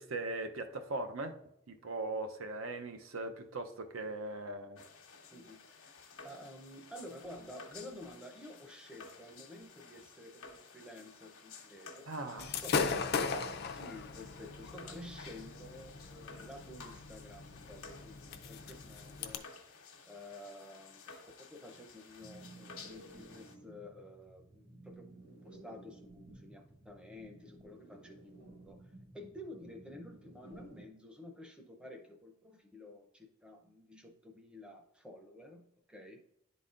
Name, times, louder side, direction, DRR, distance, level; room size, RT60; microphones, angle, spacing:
voice 1, 0.0-1.4 1.7-4.8 12.1-12.5, right 2 dB, 75° right, 7 dB, 0.6 m, -39 dB
sound 1, 4.7-23.5, left 4 dB, 80° left, 1.0 m, -54 dB
voice 2, 5.3-5.9 6.2-12.8 13.6-19.5 20.0-21.1 21.5-36.2, left 1 dB, 5° right, 2 dB, 0.6 m, -51 dB
Gunshot gunfire / Fireworks, 12.4-19.4, left 5 dB, 50° left, 0.4 m, -38 dB
sound 2, 22.2-30.9, right 2 dB, 45° right, 1.1 m, -55 dB
10.5 x 4.0 x 2.5 m, 0.80 s
head